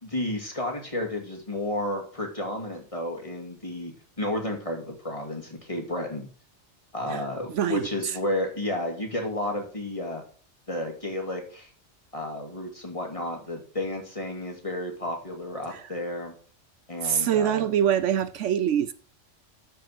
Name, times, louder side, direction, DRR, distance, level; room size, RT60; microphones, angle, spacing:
voice 1, 0.0-3.9 4.2-6.3 6.9-10.2 10.7-11.7 12.1-16.3 16.9-17.7, left 1 dB, 25° left, 2.8 m, -32 dB
voice 2, 7.5-7.8 15.7-15.8 17.0-18.9, right 9 dB, 70° right, 1.0 m, -24 dB
12.5 x 5.3 x 6.0 m
omnidirectional pair, 1.3 m